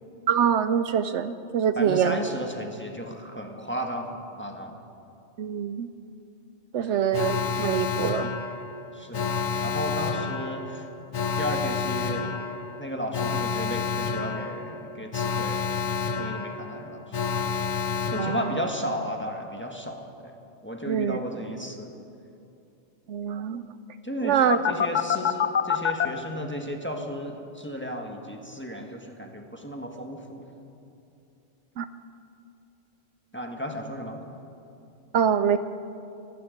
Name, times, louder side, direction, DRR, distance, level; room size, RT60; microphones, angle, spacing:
voice 1, 0.3-2.2 5.4-5.9 6.7-8.3 18.2-18.6 20.9-21.2 23.1-23.6 24.2-24.6 31.8-31.9 35.1-35.6, right 8 dB, 75° right, 12 dB, 0.9 m, -24 dB
voice 2, 1.7-4.8 6.8-7.0 8.9-10.9 11.4-12.3 12.8-15.7 16.2-17.2 18.1-20.3 20.6-21.9 24.0-30.4 33.3-34.2, equal, 10° left, 2 dB, 1.4 m, -34 dB
Alarm, 7.1-19.0 24.5-26.1, left 6 dB, 45° left, 0.6 m, -29 dB
25.0 x 11.0 x 5.1 m, 2.7 s
omnidirectional pair, 1.3 m